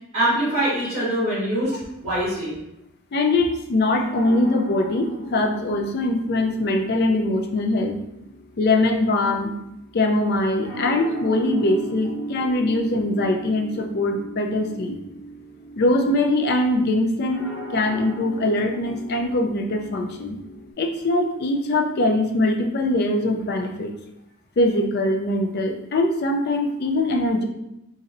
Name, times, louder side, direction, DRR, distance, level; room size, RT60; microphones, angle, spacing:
voice 1, 0.1-2.6, right 1 dB, 30° right, -11 dB, 1.3 m, -23 dB
voice 2, 3.1-8.0 8.6-9.5 9.9-15.0 15.8-17.5 17.7-20.4 20.8-23.9 24.6-27.5, left 2 dB, 45° left, 4 dB, 0.4 m, -22 dB
sound 1, 4.2-20.7, right 1 dB, 85° left, 1.0 m, -38 dB
4.1 x 2.6 x 2.5 m, 0.86 s
head